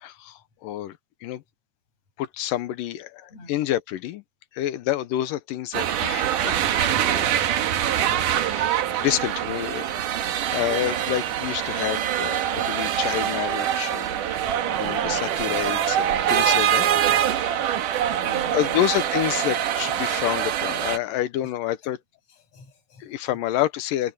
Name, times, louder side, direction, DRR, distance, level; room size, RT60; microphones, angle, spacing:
voice 1, 0.0-1.4 2.2-4.2 4.5-7.3 8.1-9.8 10.3-14.4 14.8-16.9 17.1-17.5 18.5-22.0 23.0-24.1, left 13 dB, 80° left, 2.5 m, -28 dB
voice 2, 3.1-3.6 7.9-8.3 8.8-9.8 10.4-10.5 15.0-15.8 18.1-18.9 21.1-21.5 21.8-21.9 22.3-23.4, left 2 dB, 50° left, 7.9 m, -47 dB
sound 1, 5.7-21.0, right 10 dB, 70° right, 2.8 m, -24 dB
omnidirectional pair, 3.9 m